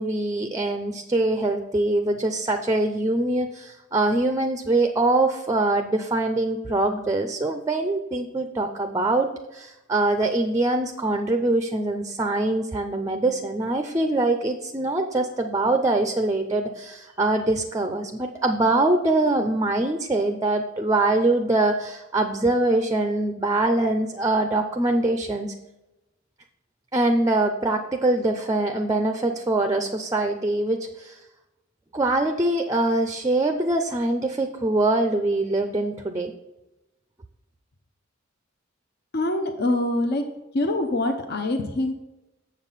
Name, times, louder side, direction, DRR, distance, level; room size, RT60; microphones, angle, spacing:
voice 1, 0.0-25.5 26.9-31.2 31.9-36.3, right 2 dB, 15° right, 6 dB, 0.5 m, -23 dB
voice 2, 39.1-40.2 40.5-41.9, left 2 dB, 50° left, 5 dB, 0.7 m, -24 dB
7.2 x 7.1 x 4.1 m, 0.96 s
head